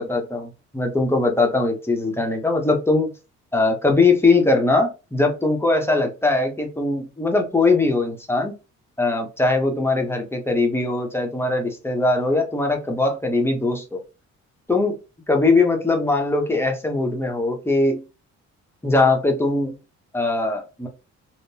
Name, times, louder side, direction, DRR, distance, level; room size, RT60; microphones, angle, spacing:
voice 1, 0.0-3.1 3.5-8.5 9.0-14.0 14.7-15.0 15.3-18.0 18.8-19.7 20.1-20.9, left 3 dB, 10° left, 0.9 m, -21 dB
3.7 x 2.1 x 2.8 m
cardioid pair, 90°, 30 cm